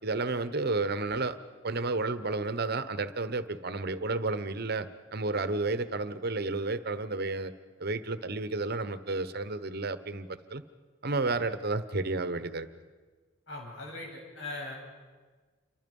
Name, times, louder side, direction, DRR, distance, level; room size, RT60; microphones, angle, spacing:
voice 1, 0.0-1.4 1.6-7.5 7.8-10.6 11.0-12.7, right 3 dB, 50° right, 12 dB, 1.0 m, -31 dB
voice 2, 13.5-14.8, left 2 dB, 60° left, 0 dB, 7.7 m, -40 dB
28.5 x 24.0 x 5.4 m, 1.4 s
head